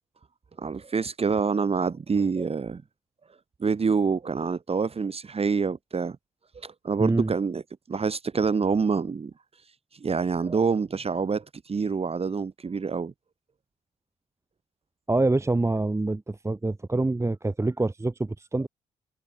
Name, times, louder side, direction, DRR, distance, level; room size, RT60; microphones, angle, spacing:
voice 1, 0.6-2.8 3.6-6.2 6.6-7.6 7.9-9.3 10.0-13.1, right 5 dB, 35° right, 2.1 m, -26 dB
voice 2, 7.0-7.3 10.5-10.6 15.1-18.7, right 2 dB, 15° right, 1.6 m, -26 dB
hypercardioid pair, 45°, 17 cm